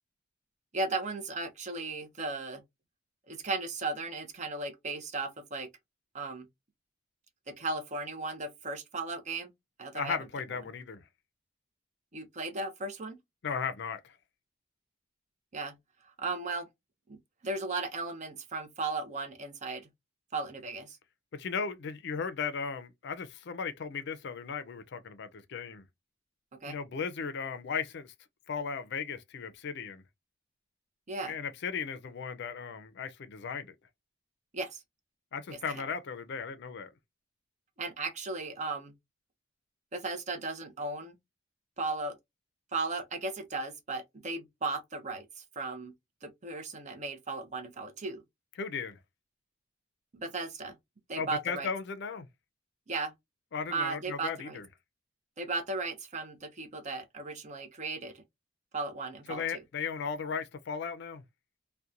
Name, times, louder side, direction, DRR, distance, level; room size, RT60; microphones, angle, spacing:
voice 1, 0.7-2.6 3.3-5.7 6.1-6.4 7.6-9.5 9.8-10.2 12.1-13.2 15.5-15.7 16.2-16.7 17.4-19.9 20.3-21.0 26.6-26.7 31.1-31.3 34.5-34.8 37.8-38.9 39.9-41.2 41.8-42.2 42.7-45.3 45.6-45.9 46.2-48.2 50.1-50.7 51.1-51.7 52.9-53.1 53.7-54.6 55.4-58.1 58.7-59.4, right 3 dB, 40° right, 0.6 m, -36 dB
voice 2, 9.9-11.0 13.4-14.2 21.3-25.8 26.6-28.1 28.5-30.0 31.2-33.7 35.3-36.9 48.6-49.0 51.2-52.3 53.5-54.7 59.3-61.2, left 6 dB, 60° left, 0.4 m, -36 dB
2.8 x 2.1 x 2.4 m
head